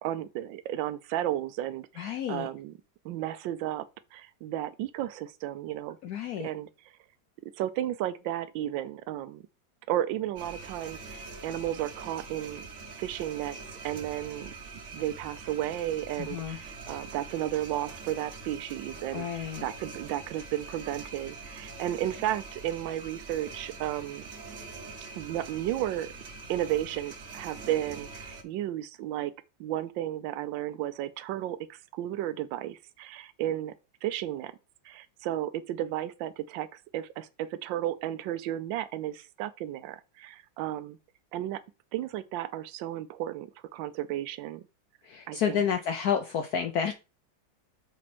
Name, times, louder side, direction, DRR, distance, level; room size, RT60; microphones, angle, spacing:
voice 1, 0.0-2.7 3.0-3.8 4.1-6.0 6.4-6.7 7.4-9.4 9.9-12.7 13.0-13.6 13.8-14.5 14.9-24.2 25.2-26.1 26.5-29.3 29.6-33.7 34.0-34.5 34.8-41.0 41.3-41.6 41.9-44.6 45.3-45.6, right 12 dB, 80° right, 1.3 m, -33 dB
voice 2, 2.0-2.5 6.0-6.5 16.2-16.6 19.1-19.6 45.0-46.9, left 8 dB, 70° left, 1.0 m, -30 dB
sound 1, 10.4-28.4, right 4 dB, 45° right, 1.2 m, -44 dB
6.3 x 4.4 x 4.2 m
omnidirectional pair, 2.1 m